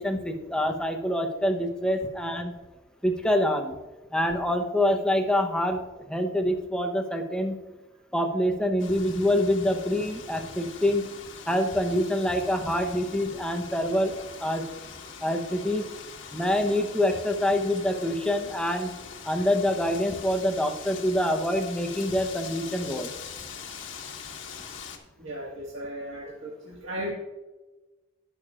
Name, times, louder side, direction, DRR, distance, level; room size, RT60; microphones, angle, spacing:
voice 1, 0.0-2.5 3.0-3.8 4.1-5.8 6.1-7.6 8.1-11.1 11.5-14.6 15.2-15.9 16.3-18.9 19.2-23.1, left 1 dB, 5° left, 4 dB, 0.9 m, -26 dB
Wind, 8.8-25.0, left 6 dB, 80° left, 1.5 m, -43 dB
voice 2, 25.2-27.1, equal, 85° right, -4 dB, 1.8 m, -36 dB
20.0 x 6.7 x 2.5 m, 1.2 s
head